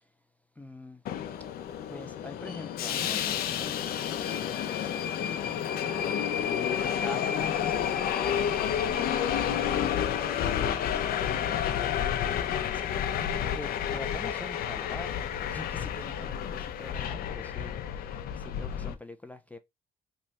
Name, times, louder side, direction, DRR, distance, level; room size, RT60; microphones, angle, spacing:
voice 1, 0.6-0.9 1.9-3.3 4.9-5.0 5.4-5.5 5.9-6.2 6.7-7.5 7.8-8.3 9.2-9.9 10.3-11.0 12.0-13.0 13.6-15.1 15.5-15.6 16.0-16.4 16.8-17.2 17.6-17.7 18.6-19.6, left 2 dB, 10° left, 0.3 m, -43 dB
Subway metro underground, 1.0-18.9, left 9 dB, 70° left, 0.6 m, -30 dB
3.1 x 2.3 x 4.1 m
cardioid pair, 110°, 16 cm